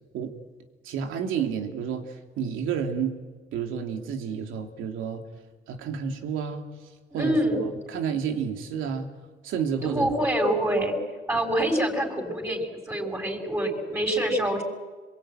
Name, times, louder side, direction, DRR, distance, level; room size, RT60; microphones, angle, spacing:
voice 1, 0.8-3.1 3.5-5.2 5.7-6.7 7.1-9.1 9.4-10.1, right 7 dB, 90° right, 3 dB, 3.0 m, -30 dB
voice 2, 7.1-7.7 9.8-10.9 11.3-14.6, right 1 dB, 15° right, 1 dB, 6.2 m, -26 dB
26.5 x 22.5 x 9.1 m, 1.3 s
cardioid pair, 90°, 20 cm